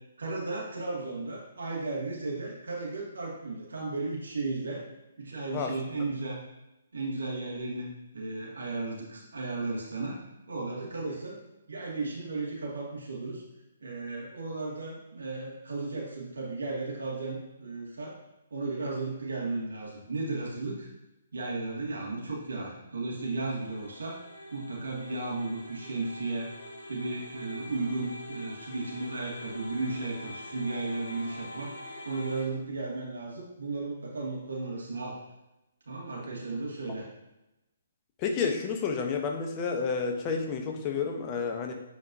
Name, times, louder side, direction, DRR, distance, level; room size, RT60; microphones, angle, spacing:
voice 1, 0.2-4.9 5.2-6.4 6.9-7.9 8.1-10.2 10.5-11.4 11.7-13.4 13.8-18.2 18.5-20.9 21.3-24.2 24.5-26.5 26.9-31.7 32.0-35.2 35.9-37.1, right 3 dB, 70° right, -3 dB, 2.3 m, -34 dB
sound 1, 23.2-32.4, left 1 dB, 70° left, 1.7 m, -45 dB
voice 2, 38.2-41.7, left 5 dB, 25° left, 3 dB, 1.0 m, -30 dB
8.5 x 4.6 x 2.8 m, 0.94 s
figure-of-eight pair, 130°, 0 cm